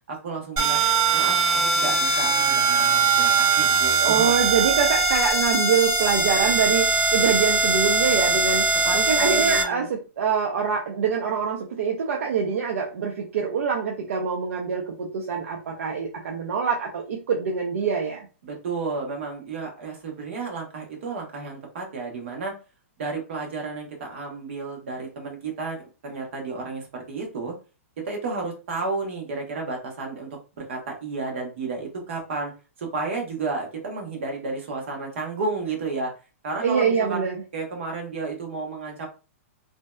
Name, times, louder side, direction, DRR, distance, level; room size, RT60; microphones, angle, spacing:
voice 1, 0.1-0.8 1.1-4.4 8.8-9.9 18.4-22.5 23.0-27.5 28.0-30.3 30.6-32.5 32.8-36.1 36.4-37.2 37.5-39.1, right 3 dB, 55° right, 1 dB, 0.9 m, -32 dB
sound 1, 0.6-9.6, right 4 dB, 30° right, 0.7 m, -21 dB
voice 2, 4.0-8.7 8.9-18.3 36.6-37.4, right 6 dB, 75° right, 1 dB, 0.5 m, -25 dB
2.6 x 2.1 x 2.2 m, 0.33 s
hypercardioid pair, 170°, 8 cm